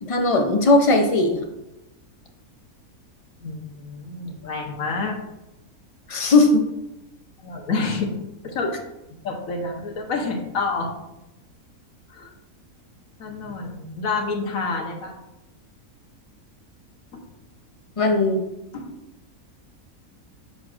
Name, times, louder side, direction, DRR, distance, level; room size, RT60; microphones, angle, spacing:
voice 1, 0.0-1.4 6.1-6.6 18.0-18.4, left 2 dB, 50° left, 3 dB, 0.4 m, -18 dB
voice 2, 3.4-5.2 7.4-8.7 9.2-11.0 12.1-12.3 13.2-15.1 18.7-18.8, left 3 dB, 70° left, 1 dB, 1.5 m, -28 dB
7.9 x 5.7 x 2.5 m, 0.93 s
omnidirectional pair, 1.6 m